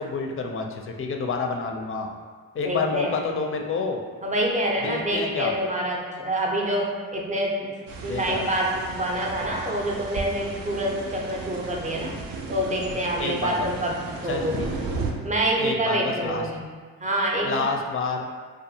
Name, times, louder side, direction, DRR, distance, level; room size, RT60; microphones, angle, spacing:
voice 1, 0.0-2.1 2.5-4.0 4.8-5.5 8.0-8.4 13.2-13.7 14.3-14.7 15.6-16.4 17.4-18.2, left 4 dB, 35° left, 3 dB, 0.4 m, -28 dB
voice 2, 2.6-3.2 4.2-12.1 12.5-14.7 15.2-16.7 17.0-17.7, right 1 dB, 20° right, -1 dB, 0.6 m, -27 dB
sound 1, 7.9-15.1, right 3 dB, 65° right, 0.5 m, -35 dB
2.5 x 2.3 x 2.7 m, 1.6 s
supercardioid pair, 40°, 36 cm